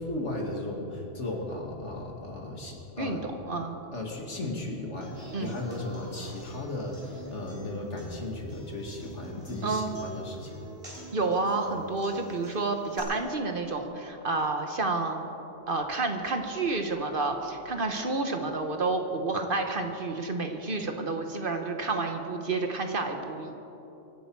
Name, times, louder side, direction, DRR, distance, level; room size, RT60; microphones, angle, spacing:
voice 1, 0.0-3.3 3.9-10.6, left 2 dB, 70° left, 0 dB, 2.5 m, -36 dB
voice 2, 3.0-3.8 5.3-5.5 9.6-10.0 11.1-15.3 15.7-23.6, right 3 dB, 50° right, 5 dB, 1.3 m, -30 dB
Human voice / Acoustic guitar, 5.0-13.0, right 1 dB, 25° right, 4.5 m, -45 dB
24.5 x 11.0 x 4.7 m, 3.0 s
omnidirectional pair, 1.2 m